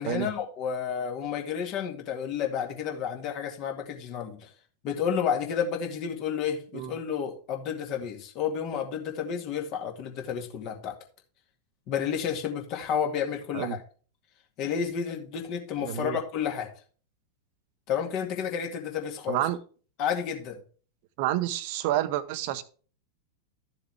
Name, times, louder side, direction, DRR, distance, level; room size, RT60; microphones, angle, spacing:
voice 1, 0.0-4.5 4.8-11.0 11.9-13.8 14.6-16.7 17.9-19.4 20.0-20.6, left 7 dB, 40° left, 2.1 m, -31 dB
voice 2, 15.8-16.2 19.3-19.6 21.2-22.6, right 13 dB, 45° right, 0.9 m, -29 dB
13.0 x 7.1 x 3.5 m
figure-of-eight pair, 90°, 0 cm